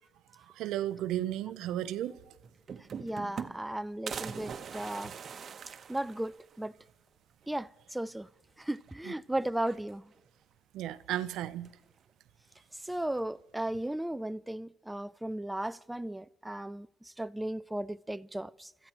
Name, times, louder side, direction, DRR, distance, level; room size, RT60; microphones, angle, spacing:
voice 1, 0.6-2.2 10.7-11.7, right 12 dB, 80° right, 0.6 m, -34 dB
sound 1, 2.1-2.2 2.4-3.7 4.1-6.7 7.1-7.2 7.4-7.5 8.7-9.2 9.5-10.3 11.3-11.9, right 6 dB, 50° right, 1.0 m, -43 dB
voice 2, 3.0-5.1 5.9-6.7 7.5-8.3 8.6-10.0 12.8-16.9 17.2-18.9, right 1 dB, 10° right, 0.4 m, -35 dB
30.0 x 14.0 x 3.0 m
supercardioid pair, 80°, 0 cm